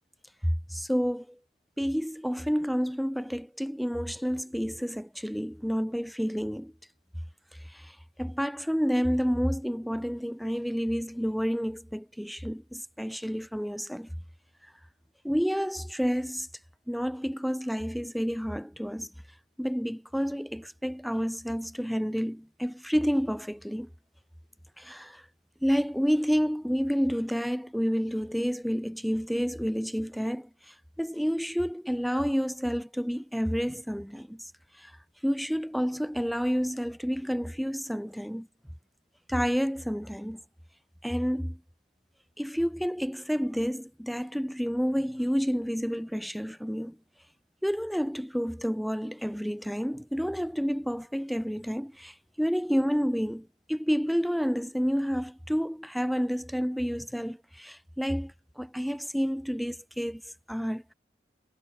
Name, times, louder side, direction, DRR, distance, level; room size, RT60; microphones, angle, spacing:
voice 1, 0.4-1.3 1.8-6.7 7.7-14.1 15.2-16.5 16.9-19.1 19.6-23.9 24.8-25.2 25.6-34.4 34.8-34.9 35.2-38.5 39.3-40.4 41.0-41.6 42.4-47.0 47.6-60.2 60.5-60.9, equal, ahead, 0.9 m, -29 dB
head